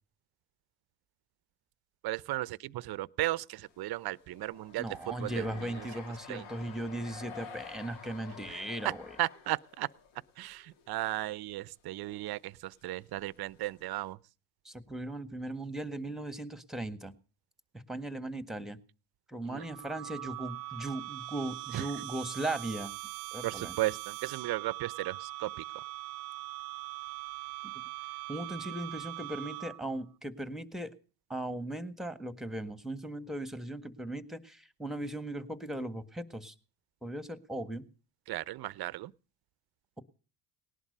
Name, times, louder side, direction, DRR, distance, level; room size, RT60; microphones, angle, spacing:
voice 1, 2.0-5.5 5.8-5.9 6.3-6.4 9.2-9.9 10.4-14.2 19.5-19.6 21.7-21.8 23.4-25.5 38.3-39.1, right 16 dB, 50° right, 0.8 m, -35 dB
sound 1, 3.6-10.3 10.6-11.2 11.5-11.6 12.0-12.3 12.9-14.1, left 5 dB, 65° left, 3.0 m, -50 dB
voice 2, 4.8-9.2 14.6-17.1 17.7-18.8 19.3-22.9 23.3-23.8 28.3-30.9 31.3-36.5 37.0-37.8, right 1 dB, ahead, 1.7 m, -38 dB
sound 2, 19.6-30.0, right 21 dB, 90° right, 0.8 m, -42 dB
18.5 x 11.0 x 6.7 m
supercardioid pair, 75°, 48 cm